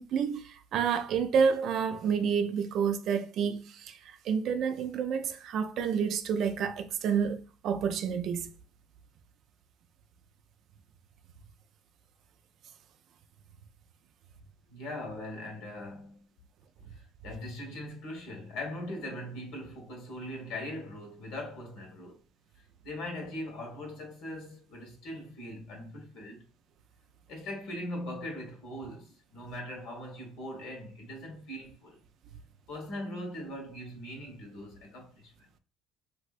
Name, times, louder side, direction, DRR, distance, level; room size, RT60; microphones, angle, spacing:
voice 1, 0.0-8.5, right 7 dB, 60° right, 0.4 m, -29 dB
voice 2, 14.7-16.2 16.9-22.2 22.8-26.5 27.3-32.0 32.7-35.5, left 1 dB, 75° left, 1.3 m, -40 dB
3.2 x 2.7 x 2.5 m
cardioid pair, 120°, 0 cm